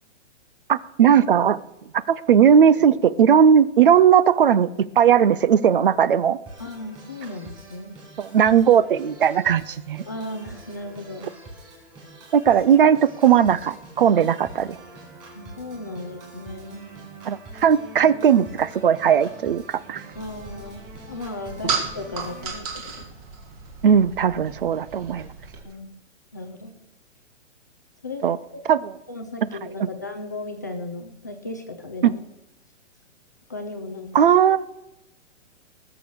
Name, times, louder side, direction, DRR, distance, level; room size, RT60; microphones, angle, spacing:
voice 1, 0.7-1.6 2.1-6.4 8.2-10.0 12.3-14.8 17.2-20.0 23.8-25.3 28.2-28.4 28.7-28.9 29.8-29.9 32.0-32.1 34.1-34.6, right 8 dB, 50° right, 18 dB, 0.5 m, -18 dB
Organ, 6.5-22.5, right 2 dB, 10° right, 4.2 m, -44 dB
voice 2, 6.6-8.0 10.1-11.3 15.4-16.9 20.2-23.0 25.6-25.9 26.3-26.7 28.0-28.2 28.5-28.6 29.1-32.2 33.5-34.1, left 2 dB, 15° left, 3 dB, 0.4 m, -35 dB
sound 1, 20.1-25.6, right 5 dB, 30° right, 2.3 m, -34 dB
19.0 x 7.0 x 6.3 m, 0.92 s
hypercardioid pair, 170°, 36 cm